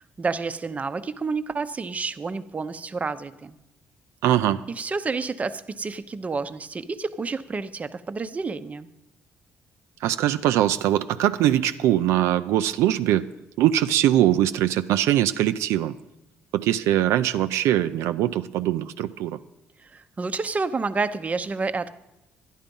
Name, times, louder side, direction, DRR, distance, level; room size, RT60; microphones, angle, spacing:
voice 1, 0.2-3.6 4.7-8.9 19.8-21.9, right 4 dB, 30° right, 11 dB, 0.7 m, -29 dB
voice 2, 4.2-4.6 10.0-13.3 13.6-15.9 16.5-19.4, right 12 dB, 85° right, 10 dB, 0.4 m, -22 dB
12.0 x 10.0 x 5.3 m, 0.90 s
cardioid pair, 80°, 5 cm